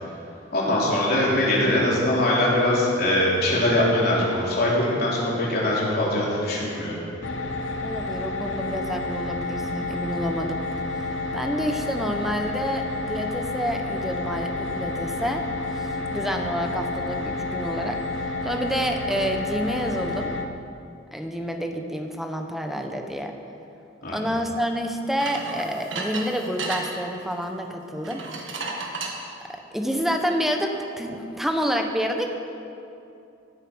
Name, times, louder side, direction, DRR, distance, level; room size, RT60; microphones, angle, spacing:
voice 1, 0.5-6.9 16.0-16.2 24.0-24.2, left 1 dB, 55° left, -5 dB, 3.7 m, -22 dB
sound 1, 7.2-20.4, left 3 dB, 70° left, 0.9 m, -30 dB
voice 2, 7.8-10.6 11.3-15.5 15.8-20.3 21.1-23.3 24.1-28.2 29.5-32.3, equal, ahead, 4 dB, 1.0 m, -28 dB
sound 2, 25.2-26.8 28.0-29.2, right 3 dB, 70° right, 1.8 m, -32 dB
16.5 x 9.0 x 6.2 m, 2.7 s
head